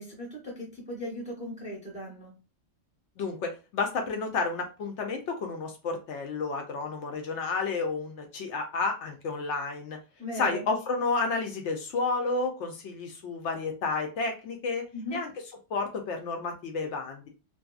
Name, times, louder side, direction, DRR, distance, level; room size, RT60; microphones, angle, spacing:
voice 1, 0.0-2.3 10.2-10.6 14.9-15.2, equal, 5° right, -2 dB, 0.7 m, -38 dB
voice 2, 3.2-10.0 10.3-14.9 15.1-15.3 15.7-17.3, left 4 dB, 70° left, 4 dB, 0.8 m, -31 dB
2.7 x 2.5 x 2.3 m, 0.31 s
omnidirectional pair, 1.3 m